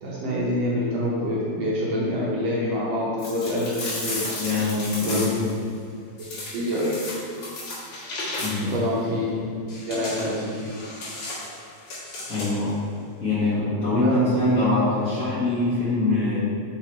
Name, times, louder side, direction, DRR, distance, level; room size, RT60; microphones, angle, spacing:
voice 1, 0.0-4.3 5.0-5.3 6.5-6.9 8.6-9.3 9.9-10.5 14.0-14.1, left 1 dB, 70° right, -6 dB, 1.8 m, -26 dB
sound 1, 3.2-5.6 6.2-8.8 9.7-12.7, left 2 dB, 60° left, 2.7 m, -34 dB
voice 2, 4.4-5.2 8.4-8.7 12.3-12.8 13.2-16.4, left 2 dB, 40° left, -13 dB, 1.5 m, -23 dB
6.2 x 4.0 x 4.3 m, 2.2 s
omnidirectional pair, 3.5 m